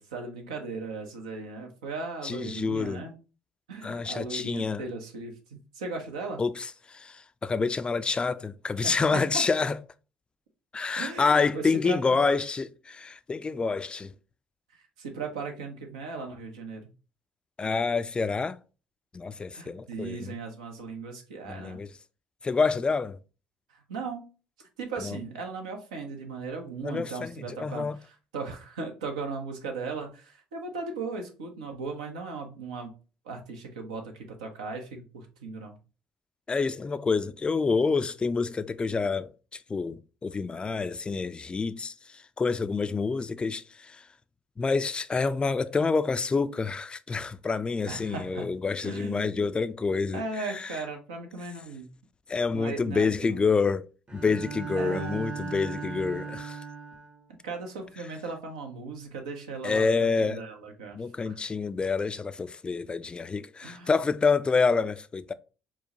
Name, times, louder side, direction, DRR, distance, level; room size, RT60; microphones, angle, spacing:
voice 1, 0.0-3.1 3.7-6.4 8.8-9.4 11.0-12.2 14.7-16.9 19.5-21.8 23.7-24.2 24.8-32.9 33.2-34.1 34.4-35.7 47.9-48.5 48.8-49.3 50.1-51.9 52.5-53.4 54.8-55.2 57.4-61.0 61.2-61.4 63.6-63.9, right 4 dB, 80° right, 0.7 m, -37 dB
voice 2, 2.2-3.0 3.8-4.8 6.4-9.8 10.7-14.1 17.6-18.6 19.1-20.4 21.4-21.9 22.4-23.2 25.0-25.2 26.8-28.0 36.5-44.1 44.6-50.8 52.3-53.9 54.1-56.6 59.6-60.4 60.9-65.3, left 4 dB, 25° left, 0.3 m, -28 dB
Bowed string instrument, 54.1-57.2, right 5 dB, 25° right, 0.7 m, -37 dB
4.5 x 2.1 x 2.8 m
hypercardioid pair, 55°, 4 cm